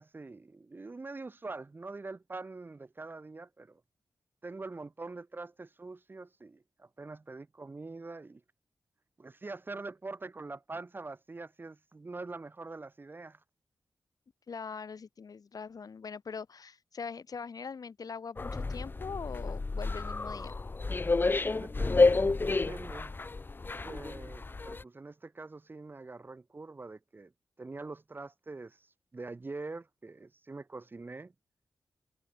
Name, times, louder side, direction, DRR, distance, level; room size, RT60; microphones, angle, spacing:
voice 1, 0.0-3.8 4.4-8.4 9.2-13.4 21.2-23.1 23.8-27.3 27.6-31.3, right 3 dB, 30° right, 0.9 m, -44 dB
voice 2, 14.5-20.5, left 5 dB, 55° left, 3.0 m, -42 dB
sound 1, 18.4-24.8, left 3 dB, 30° left, 0.9 m, -30 dB
wide cardioid pair, 145°, 7 cm